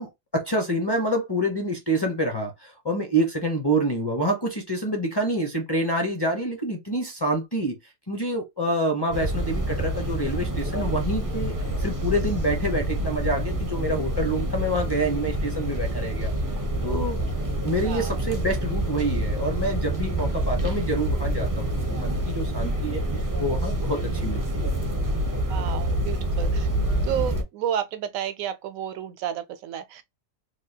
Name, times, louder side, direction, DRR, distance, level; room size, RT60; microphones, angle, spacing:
voice 1, 0.0-7.8 8.1-11.5 11.8-16.3 16.8-17.2 17.6-23.0 23.4-24.6, right 1 dB, 30° left, 0.5 m, -27 dB
sound 1, 9.1-27.4, right 1 dB, 30° right, 0.4 m, -27 dB
voice 2, 17.8-18.1 25.5-26.7 27.0-30.0, right 9 dB, 80° right, 1.0 m, -31 dB
3.3 x 2.3 x 2.7 m
omnidirectional pair, 1.4 m